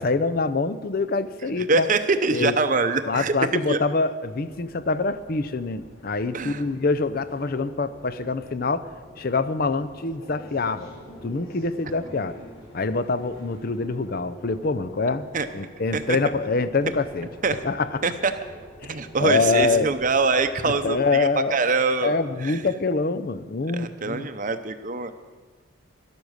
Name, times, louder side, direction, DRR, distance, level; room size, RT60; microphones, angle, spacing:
voice 1, 0.0-1.9 2.3-2.5 3.0-8.9 9.2-10.9 11.2-12.4 12.7-15.3 15.5-17.3 17.6-18.0 18.8-19.9 20.6-21.5 22.0-24.3, left 3 dB, 45° left, 13 dB, 0.5 m, -25 dB
voice 2, 1.7-3.3 3.7-3.8 6.3-6.6 15.3-15.5 15.9-16.2 17.4-17.6 18.0-18.3 18.8-22.6 23.7-25.1, right 4 dB, 40° right, 9 dB, 0.7 m, -24 dB
sound 1, 4.3-21.0, equal, 80° left, 4.3 m, -46 dB
12.0 x 12.0 x 6.4 m, 1.4 s
head